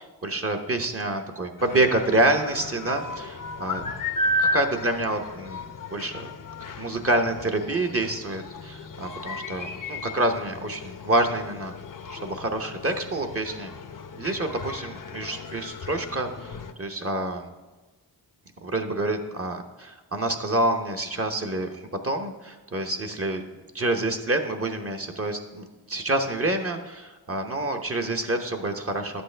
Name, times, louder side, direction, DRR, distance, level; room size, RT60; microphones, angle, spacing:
voice 1, 0.0-3.9 4.4-6.3 6.8-11.7 12.1-13.7 14.2-17.5 18.6-23.4 23.7-29.2, right 2 dB, 30° right, 4 dB, 0.9 m, -27 dB
sound 1, 1.6-16.7, left 2 dB, 50° left, 0.8 m, -34 dB
11.0 x 8.1 x 3.3 m, 1.2 s
cardioid pair, 60°, 43 cm